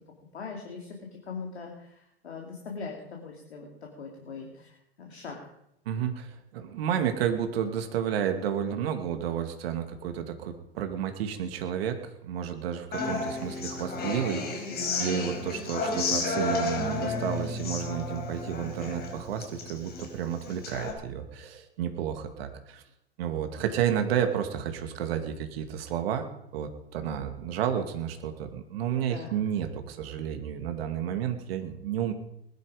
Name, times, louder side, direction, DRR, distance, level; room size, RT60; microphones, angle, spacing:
voice 1, 0.3-5.4 29.1-29.4, left 5 dB, 85° left, 0 dB, 3.2 m, -41 dB
voice 2, 5.9-12.0 12.2-22.8 23.2-26.3 26.5-32.1, right 9 dB, 65° right, 7 dB, 2.3 m, -31 dB
Human voice / Acoustic guitar, 12.9-20.9, left 3 dB, 30° left, 5.1 m, -32 dB
20.0 x 12.0 x 5.0 m, 0.79 s
hypercardioid pair, 95°, 31 cm